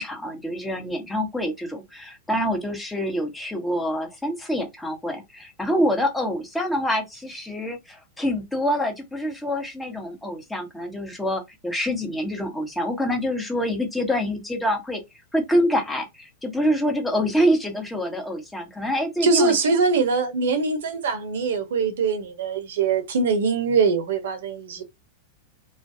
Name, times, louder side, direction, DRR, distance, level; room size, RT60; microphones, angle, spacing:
voice 1, 0.0-15.0 15.3-19.5, equal, 5° left, 0.9 m, -26 dB
voice 2, 19.2-24.8, right 4 dB, 70° right, 0.8 m, -22 dB
2.4 x 2.2 x 2.6 m
hypercardioid pair, 105°, 0 cm